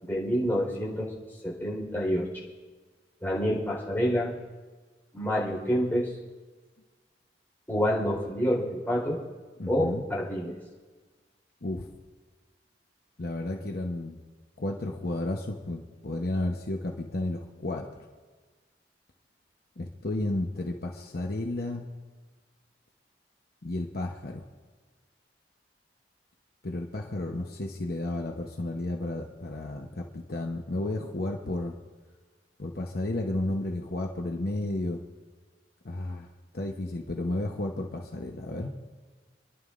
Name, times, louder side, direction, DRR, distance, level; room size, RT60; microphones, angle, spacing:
voice 1, 0.0-1.1 1.4-2.3 3.2-4.3 5.1-6.1 7.7-9.2 9.7-10.6, equal, 10° left, -4 dB, 4.1 m, -27 dB
voice 2, 9.6-10.0 11.6-11.9 13.2-14.2 14.6-17.9 19.8-21.9 23.6-24.4 26.6-31.8 32.6-35.0 35.8-36.3 36.5-38.7, left 1 dB, 60° left, 2 dB, 0.9 m, -32 dB
29.0 x 11.5 x 2.5 m, 1.4 s
head